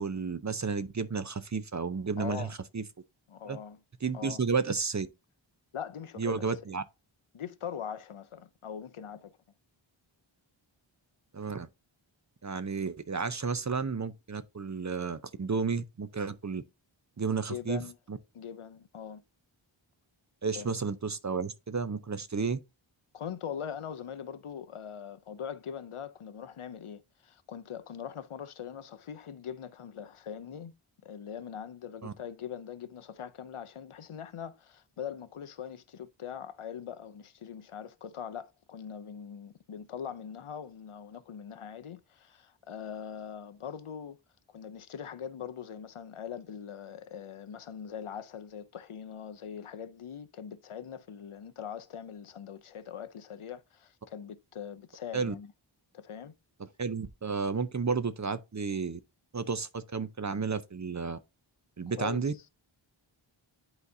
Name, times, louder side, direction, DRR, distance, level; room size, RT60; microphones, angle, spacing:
voice 1, 0.0-2.5 2.7-2.8 3.5-3.6 4.0-5.1 6.2-6.8 11.3-11.7 12.4-16.6 17.2-17.8 18.1-18.2 20.4-22.6 32.0-32.1 55.1-55.3 56.6-59.0 59.3-61.2 61.8-62.3, right 5 dB, 35° right, 0.5 m, -32 dB
voice 2, 2.2-2.5 3.3-3.8 4.1-4.4 5.7-6.5 7.3-9.4 17.5-18.0 18.3-19.2 20.5-20.7 23.1-30.7 31.0-44.2 44.5-55.5 55.9-56.3 62.0-62.2, left 8 dB, 80° left, 0.7 m, -42 dB
10.5 x 4.1 x 2.6 m
wide cardioid pair, 50°, 49 cm